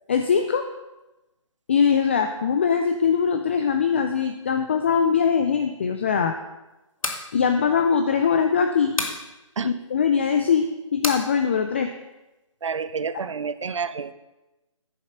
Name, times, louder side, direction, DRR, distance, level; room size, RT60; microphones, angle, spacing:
voice 1, 0.1-0.7 1.7-6.4 7.3-9.0 9.6-10.7 10.9-11.9, left 6 dB, 20° left, 6 dB, 0.4 m, -21 dB
sound 1, 6.8-7.3 9.0-9.2 11.0-11.2, left 2 dB, 85° left, 1.7 m, -27 dB
voice 2, 12.6-14.1, right 5 dB, 65° right, 14 dB, 0.7 m, -29 dB
10.0 x 7.1 x 5.6 m, 1.0 s
figure-of-eight pair, 150°, 17 cm